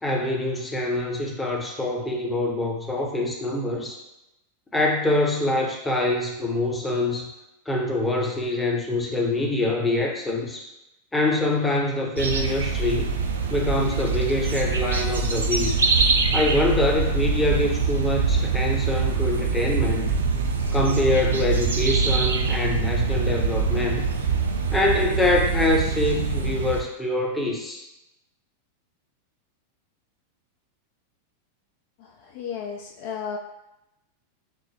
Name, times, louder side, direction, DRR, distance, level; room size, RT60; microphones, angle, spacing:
voice 1, 0.0-4.0 4.7-7.3 7.7-10.7 11.1-13.0 13.5-15.7 16.3-20.2 20.7-24.0 24.7-27.8, left 2 dB, 10° left, -1 dB, 0.7 m, -25 dB
sound 1, 12.2-26.8, right 4 dB, 70° right, 0.3 m, -24 dB
voice 2, 32.0-33.4, left 7 dB, 50° left, 2 dB, 0.3 m, -34 dB
4.3 x 2.0 x 3.3 m, 0.92 s
figure-of-eight pair, 90°, 0 cm